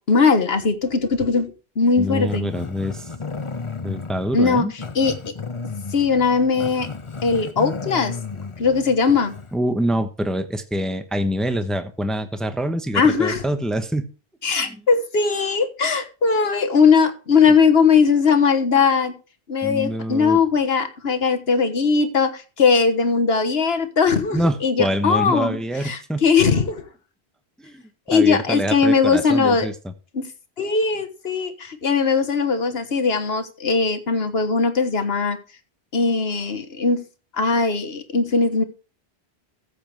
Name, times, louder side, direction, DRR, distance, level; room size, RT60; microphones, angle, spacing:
voice 1, 0.1-2.5 4.3-4.6 4.9-5.1 5.9-6.9 7.2-8.1 8.6-9.3 12.9-13.4 14.4-19.1 19.5-25.6 25.8-26.8 28.1-29.7 30.1-30.3 30.6-35.4 35.9-37.0 37.3-38.6, left 5 dB, 70° left, 9 dB, 1.6 m, -19 dB
voice 2, 2.0-3.1 3.8-4.7 9.5-14.1 14.5-14.8 19.6-20.4 24.3-26.2 27.6-27.8 28.1-29.7, equal, ahead, 9 dB, 0.9 m, -25 dB
Growling, 2.2-9.6, left 4 dB, 30° left, 0.9 m, -33 dB
14.0 x 8.0 x 3.4 m, 0.34 s
omnidirectional pair, 1.1 m